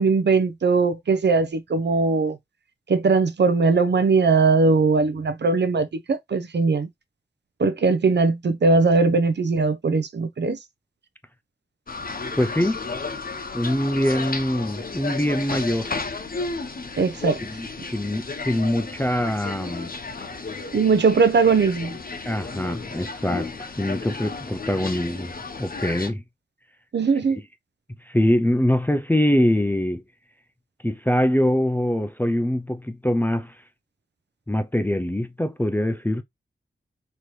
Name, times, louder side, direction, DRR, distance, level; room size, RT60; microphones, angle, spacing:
voice 1, 0.0-2.4 2.9-6.9 7.6-10.6 17.0-17.4 20.7-22.0 26.9-27.4, right 4 dB, 60° right, 0.7 m, -20 dB
sound 1, 11.9-26.1, left 4 dB, 45° left, 0.8 m, -33 dB
voice 2, 12.4-12.8 13.5-15.9 17.4-19.9 22.3-23.5 23.8-25.3 25.6-26.2 28.1-30.0 30.8-33.5 34.5-36.2, left 1 dB, 10° left, 0.5 m, -23 dB
4.4 x 3.0 x 3.2 m
wide cardioid pair, 85°, 20 cm